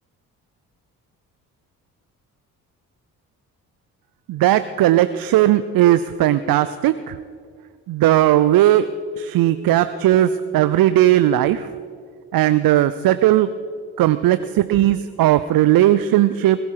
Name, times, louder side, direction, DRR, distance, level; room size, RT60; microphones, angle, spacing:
voice 1, 4.3-7.1 7.9-8.9 9.2-11.6 12.3-13.5 14.0-16.6, right 13 dB, 50° right, 13 dB, 0.7 m, -17 dB
21.5 x 13.0 x 4.8 m, 2.1 s
hypercardioid pair, 45°, 44 cm